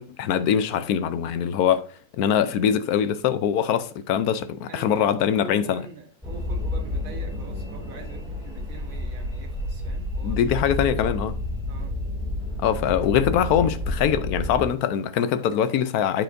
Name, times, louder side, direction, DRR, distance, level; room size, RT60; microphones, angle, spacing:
voice 1, 0.0-1.9 2.2-5.8 10.2-11.4 12.6-16.2, left 9 dB, 70° left, 1.0 m, -23 dB
voice 2, 4.7-11.1 11.6-12.0, right 4 dB, 55° right, 1.7 m, -44 dB
sound 1, 6.2-14.7, left 1 dB, ahead, 2.2 m, -30 dB
7.6 x 6.8 x 2.6 m
omnidirectional pair, 1.8 m